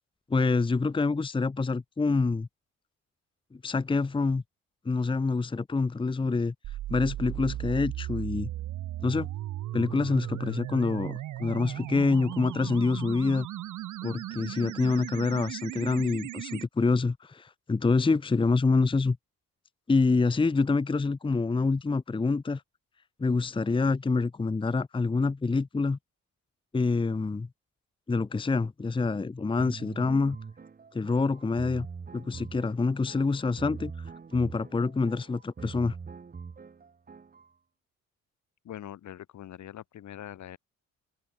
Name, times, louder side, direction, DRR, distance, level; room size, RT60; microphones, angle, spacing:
voice 1, 0.3-2.5 3.6-4.4 4.8-6.5 6.9-8.5 9.0-9.3 9.7-13.5 14.0-19.2 19.9-22.6 23.2-26.0 26.7-27.5 28.1-30.4 30.9-31.9 32.1-33.9 34.3-36.0, left 3 dB, 15° left, 0.8 m, -26 dB
sound 1, 6.6-16.6, right 14 dB, 75° right, 1.6 m, -37 dB
sound 2, 29.6-37.5, right 5 dB, 30° right, 1.6 m, -43 dB
voice 2, 38.6-40.6, left 11 dB, 70° left, 4.0 m, -43 dB
open air
cardioid pair, 90°, 30 cm